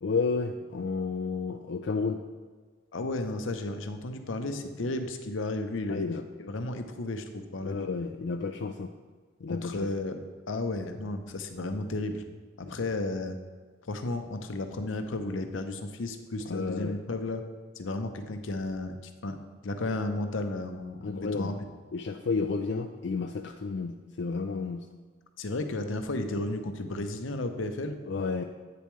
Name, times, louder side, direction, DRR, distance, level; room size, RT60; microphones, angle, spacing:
voice 1, 0.0-2.2 5.9-6.2 7.6-8.9 9.4-9.9 12.6-12.8 16.5-17.0 21.0-21.6 21.9-24.8 28.1-28.4, left 4 dB, 60° left, 4 dB, 0.3 m, -31 dB
voice 2, 2.9-6.0 6.4-7.9 9.5-12.2 12.6-13.4 13.9-17.4 17.8-19.0 19.2-19.4 19.6-21.6 25.4-28.0, left 2 dB, 85° left, 7 dB, 0.7 m, -33 dB
8.6 x 6.9 x 3.1 m, 1.5 s
head